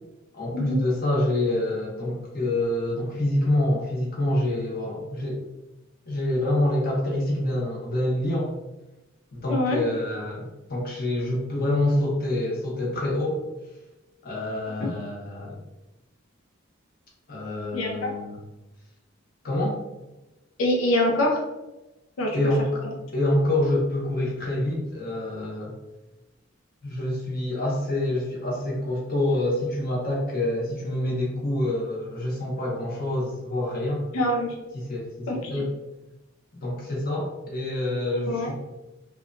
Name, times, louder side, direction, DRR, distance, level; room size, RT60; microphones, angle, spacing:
voice 1, 0.3-5.4 6.1-8.5 9.3-13.4 14.2-15.6 17.3-18.4 19.4-19.8 22.3-22.8 23.1-25.7 26.8-34.1 34.7-35.7 36.6-38.5, left 1 dB, 50° left, -4 dB, 0.8 m, -26 dB
voice 2, 9.5-9.8 14.8-14.9 17.7-18.1 20.6-21.4 22.2-22.4 34.1-34.5 35.3-35.6 38.3-38.5, left 1 dB, 85° left, 0 dB, 0.5 m, -24 dB
2.8 x 2.2 x 2.5 m, 1.0 s
head